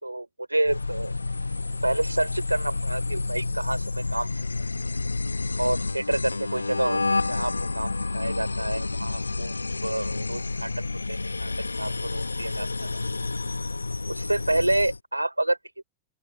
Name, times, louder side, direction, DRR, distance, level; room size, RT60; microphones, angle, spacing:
voice 1, 0.0-1.1 1.8-4.4 5.6-9.5 9.8-10.7 11.1-11.5 11.8-13.0 14.1-15.8, right 1 dB, 85° right, 4.3 m, -28 dB
sound 1, 0.6-15.0, left 3 dB, 80° left, 0.8 m, -30 dB
open air
figure-of-eight pair, 90°, 0 cm